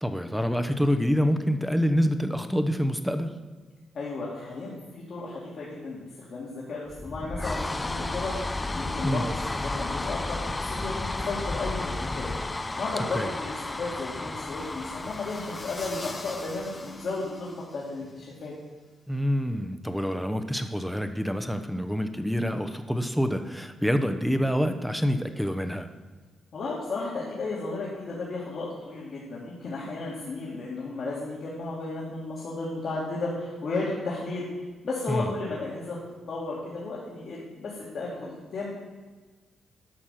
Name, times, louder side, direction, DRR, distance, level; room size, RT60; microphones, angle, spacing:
voice 1, 0.0-3.3 9.0-9.3 13.1-13.3 19.1-25.9 35.1-35.3, equal, ahead, 8 dB, 0.9 m, -26 dB
voice 2, 3.9-11.0 11.2-12.3 12.8-17.5 17.7-18.5 26.5-34.5 34.8-36.0 36.3-38.7, left 3 dB, 65° left, -7 dB, 2.4 m, -34 dB
sound 1, 6.9-17.4, left 2 dB, 25° left, 0.5 m, -33 dB
sound 2, 14.4-18.3, left 3 dB, 40° left, 1.9 m, -45 dB
11.5 x 6.1 x 5.8 m, 1.3 s
supercardioid pair, 60°, 0 cm